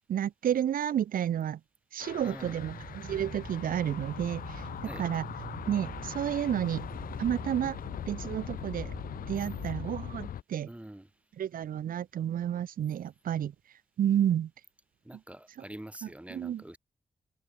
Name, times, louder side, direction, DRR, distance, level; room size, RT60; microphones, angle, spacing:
voice 1, 0.1-1.6 1.9-4.7 5.0-5.2 5.7-6.9 7.2-7.8 8.1-8.9 9.3-10.7 11.4-13.5 14.0-14.5 16.3-16.6, right 10 dB, 80° right, 0.5 m, -31 dB
sound 1, 2.0-10.4, left 10 dB, 90° left, 0.6 m, -41 dB
voice 2, 2.2-2.6 4.8-5.1 10.6-11.1 15.0-16.8, right 1 dB, 10° right, 1.0 m, -45 dB
sound 2, 2.6-9.8, right 5 dB, 50° right, 1.3 m, -44 dB
open air
wide cardioid pair, 95°, 14 cm